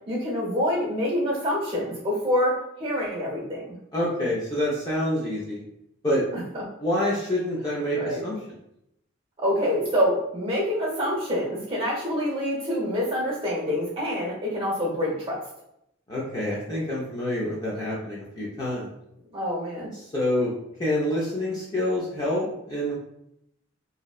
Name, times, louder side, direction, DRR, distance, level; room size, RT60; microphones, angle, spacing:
voice 1, 0.1-2.5 2.8-3.8 6.5-6.6 8.0-8.2 9.4-15.4 19.3-19.9, equal, 25° right, -4 dB, 0.9 m, -26 dB
voice 2, 3.9-5.6 6.0-6.3 6.8-8.4 16.1-18.9 19.9-20.5 20.8-23.0, left 1 dB, 20° left, -6 dB, 0.4 m, -27 dB
2.7 x 2.1 x 2.3 m, 0.78 s
head